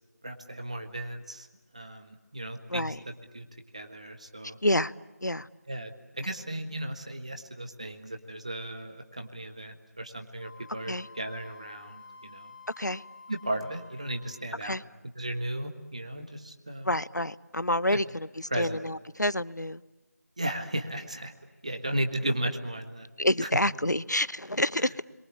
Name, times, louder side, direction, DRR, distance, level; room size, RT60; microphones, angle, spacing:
voice 1, 0.2-1.5 1.7-2.9 3.3-3.5 3.7-4.6 5.7-12.5 13.3-14.8 15.2-16.9 17.9-18.0 18.5-18.8 20.4-21.3 21.6-23.1, right 1 dB, 20° right, 6 dB, 1.6 m, -35 dB
voice 2, 4.6-4.9 5.2-5.5 10.9-11.1 12.8-13.0 14.6-14.8 16.8-19.8 23.2-25.0, left 1 dB, 85° left, 18 dB, 1.0 m, -28 dB
Wind instrument woodwind instrument, 10.4-14.5, left 4 dB, 25° left, 2.3 m, -51 dB
30.0 x 23.0 x 8.5 m, 1.1 s
figure-of-eight pair, 175°, 9 cm